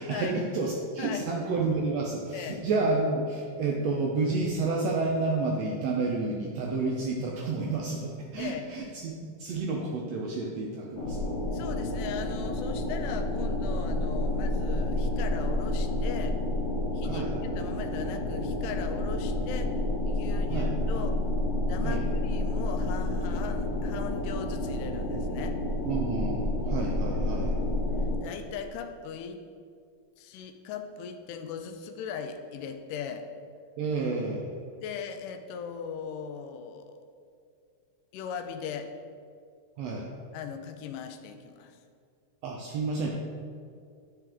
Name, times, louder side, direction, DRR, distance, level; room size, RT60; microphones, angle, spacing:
voice 1, 0.0-11.3 17.0-17.4 20.5-20.8 21.8-22.0 25.8-27.6 33.8-34.5 39.8-40.1 42.4-43.1, right 3 dB, 80° right, -1 dB, 1.5 m, -30 dB
sound 1, 1.4-4.3, left 1 dB, 55° right, 2.4 m, -49 dB
voice 2, 2.3-2.6 8.4-8.7 11.5-16.4 16.9-17.3 17.6-19.7 20.1-21.2 21.7-25.6 28.2-29.4 30.2-33.3 34.8-37.0 38.1-38.9 40.3-41.8, left 7 dB, 90° left, 7 dB, 2.2 m, -39 dB
sound 2, 10.9-28.2, left 1 dB, 65° left, 1.6 m, -29 dB
9.7 x 4.7 x 3.4 m, 2.3 s
omnidirectional pair, 3.6 m